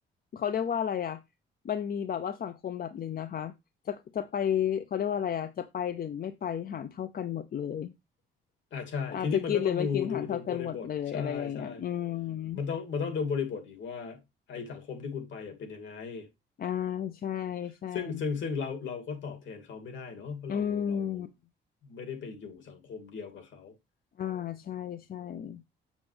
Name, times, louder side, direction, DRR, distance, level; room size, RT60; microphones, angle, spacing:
voice 1, 0.3-1.2 1.6-3.5 3.8-7.9 9.1-12.6 16.6-18.2 20.5-21.3 24.2-25.6, left 9 dB, 50° left, 0.6 m, -32 dB
voice 2, 8.7-11.8 12.5-14.2 14.5-16.3 17.9-21.3 21.8-23.7, left 6 dB, 70° left, 2.6 m, -36 dB
7.3 x 6.9 x 3.3 m
cardioid pair, 90°, 20 cm